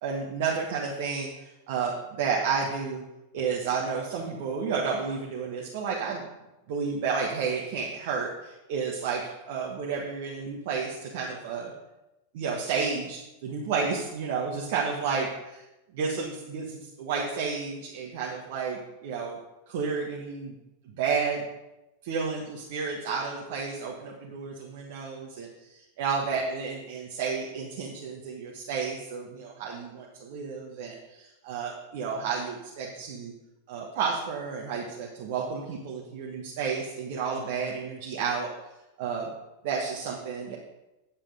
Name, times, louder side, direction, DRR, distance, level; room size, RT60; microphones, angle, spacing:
voice 1, 0.0-3.0 3.3-6.2 6.7-11.7 12.3-15.6 15.9-19.4 19.7-20.5 20.9-21.4 22.0-33.3 33.7-38.5 39.0-39.3 39.6-40.6, right 5 dB, 50° right, -2 dB, 1.4 m, -31 dB
9.5 x 7.4 x 5.0 m, 0.95 s
figure-of-eight pair, 90°, 0 cm